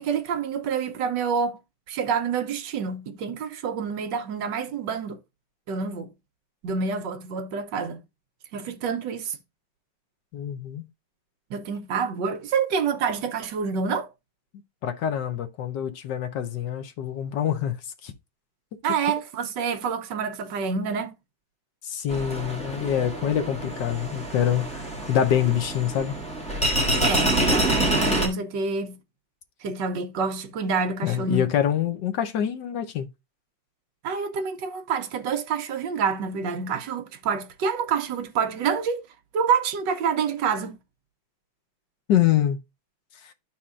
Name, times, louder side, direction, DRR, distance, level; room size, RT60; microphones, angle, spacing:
voice 1, 0.0-1.6 1.9-5.2 5.7-6.1 6.6-8.0 8.5-9.4 11.5-14.1 18.8-21.1 27.0-29.0 29.6-31.5 34.0-39.0 39.3-40.8, right 6 dB, 65° right, 1.4 m, -27 dB
voice 2, 10.3-10.8 14.8-17.8 18.0-18.1 21.8-26.1 31.0-33.1 42.1-42.6 43.2-43.3, left 10 dB, 65° left, 1.4 m, -25 dB
sound 1, 22.1-28.3, right 1 dB, 5° left, 1.2 m, -26 dB
12.0 x 4.3 x 2.4 m
omnidirectional pair, 2.2 m